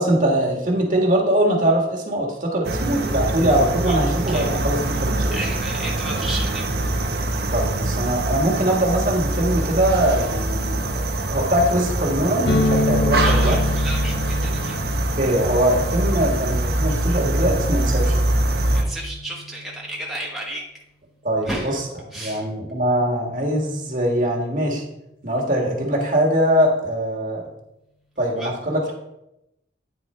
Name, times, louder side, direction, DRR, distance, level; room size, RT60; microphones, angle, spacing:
voice 1, 0.0-5.4 7.5-13.6 15.2-18.2 21.2-21.8 22.1-24.8 25.2-27.4 28.2-28.9, right 1 dB, 45° right, -1 dB, 1.6 m, -22 dB
sound 1, 2.6-18.8, right 1 dB, 65° right, 0.8 m, -23 dB
voice 2, 5.3-6.7 13.2-14.7 18.7-20.6 21.4-21.8 22.1-22.5 28.4-28.5, right 1 dB, ahead, -4 dB, 1.1 m, -32 dB
sound 2, 12.4-20.1, left 1 dB, 70° left, 0.6 m, -28 dB
9.3 x 4.2 x 4.3 m, 0.86 s
head